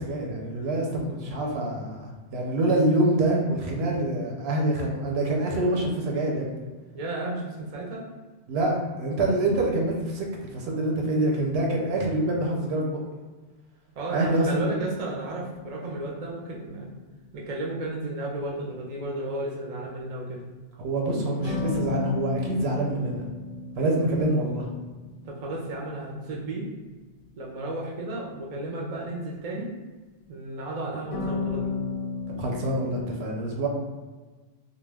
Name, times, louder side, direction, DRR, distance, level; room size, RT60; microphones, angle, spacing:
voice 1, 0.0-6.5 8.5-10.3 10.5-13.0 14.1-14.6 20.8-23.2 23.8-24.7 32.4-33.7, right 1 dB, 75° right, -1 dB, 0.8 m, -26 dB
voice 2, 6.9-8.0 13.9-16.9 17.3-20.4 25.2-26.7 27.4-29.7 30.3-31.8, right 2 dB, 45° right, -2 dB, 0.5 m, -33 dB
sound 1, 14.8-17.1 21.4-26.2 31.1-33.0, left 4 dB, 90° left, 0.8 m, -34 dB
2.3 x 2.1 x 3.3 m, 1.3 s
omnidirectional pair, 1.1 m